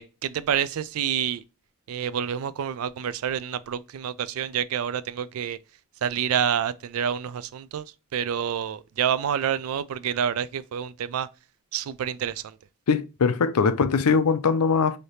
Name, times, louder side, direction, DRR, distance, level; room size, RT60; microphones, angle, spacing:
voice 1, 0.0-1.4 1.9-5.6 6.0-7.9 8.1-11.3 11.7-12.6, right 8 dB, 70° right, 0.3 m, -28 dB
voice 2, 12.9-15.0, left 5 dB, 85° left, 0.5 m, -21 dB
3.3 x 2.8 x 4.1 m
head